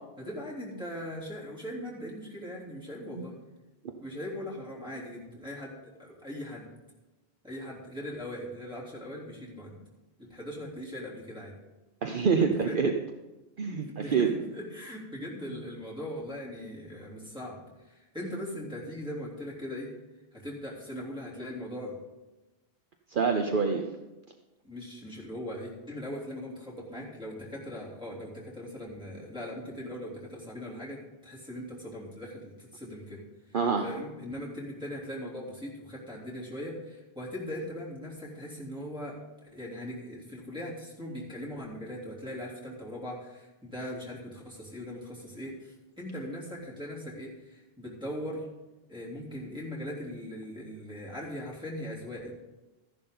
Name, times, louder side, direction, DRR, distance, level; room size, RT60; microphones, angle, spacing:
voice 1, 0.2-3.3 4.0-6.7 7.4-9.7 10.2-11.5 12.4-12.9 13.9-19.9 20.3-22.0 24.6-33.2 33.8-48.5 48.9-52.3, equal, 5° right, -4 dB, 3.3 m, -40 dB
voice 2, 12.0-12.9 13.6-14.3 23.1-23.8 33.5-33.9, right 5 dB, 55° right, 4 dB, 0.9 m, -26 dB
14.0 x 11.0 x 3.9 m, 1.1 s
omnidirectional pair, 1.1 m